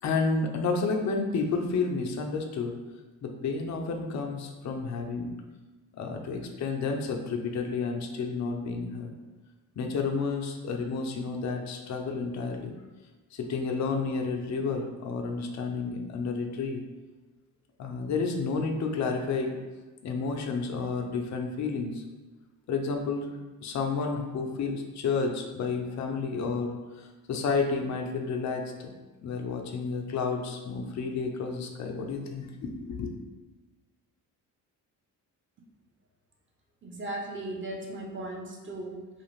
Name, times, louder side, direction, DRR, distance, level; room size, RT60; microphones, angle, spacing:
voice 1, 0.0-2.7 3.2-5.3 5.9-9.1 9.8-12.7 13.3-16.8 17.8-19.5 20.0-22.0 22.7-23.3 23.6-28.9 29.2-33.1, left 4 dB, 35° left, 3 dB, 0.5 m, -31 dB
voice 2, 36.8-39.1, right 1 dB, 25° right, 0 dB, 0.7 m, -37 dB
2.4 x 2.4 x 3.1 m, 1.2 s
hypercardioid pair, 50°, 48 cm